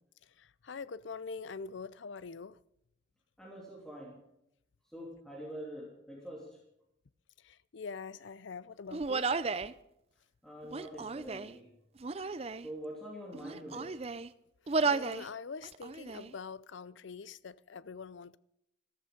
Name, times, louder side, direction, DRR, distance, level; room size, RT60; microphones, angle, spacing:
voice 1, 0.4-2.6 7.4-9.4 14.7-18.4, left 5 dB, 75° left, 19 dB, 0.5 m, -44 dB
voice 2, 3.4-4.2 4.8-6.6 10.4-11.7 12.6-14.0, equal, 5° left, -3 dB, 2.7 m, -45 dB
Human voice, 8.9-9.7 10.6-11.6 12.0-12.7 13.3-14.3 14.7-15.3 15.6-16.3, right 4 dB, 30° right, 0.5 m, -33 dB
14.0 x 14.0 x 5.2 m, 0.80 s
head